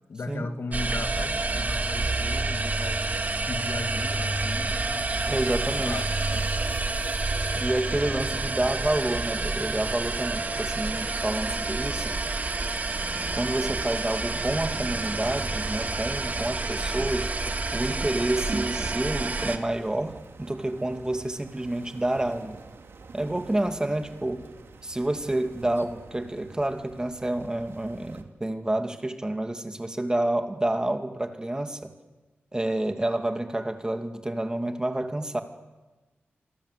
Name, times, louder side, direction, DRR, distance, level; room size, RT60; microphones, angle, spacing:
voice 1, 0.1-3.2 3.5-5.2 5.6-6.5, left 3 dB, 65° left, 7 dB, 2.3 m, -37 dB
sound 1, 0.7-19.6, right 3 dB, 40° right, 2.2 m, -29 dB
sound 2, 5.2-10.3, left 2 dB, 30° left, 5.9 m, -46 dB
voice 2, 5.3-6.0 7.5-12.4 13.3-17.3 17.7-22.6 23.1-24.4 24.8-31.9 32.5-35.4, right 1 dB, 20° right, 6 dB, 2.5 m, -29 dB
sound 3, 17.8-28.2, right 4 dB, 70° right, 2.6 m, -49 dB
27.5 x 24.5 x 8.4 m, 1.2 s
wide cardioid pair, 90°, 4 cm